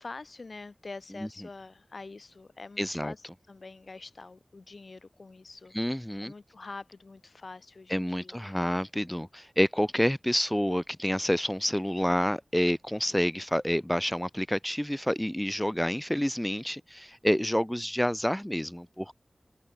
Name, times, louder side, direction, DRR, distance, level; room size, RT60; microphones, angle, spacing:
voice 1, 0.0-5.7 6.2-8.4, left 3 dB, 65° left, 6.7 m, -45 dB
voice 2, 2.8-3.1 5.7-6.3 7.9-19.1, equal, 5° left, 0.9 m, -28 dB
open air
wide cardioid pair, 55°, 0 cm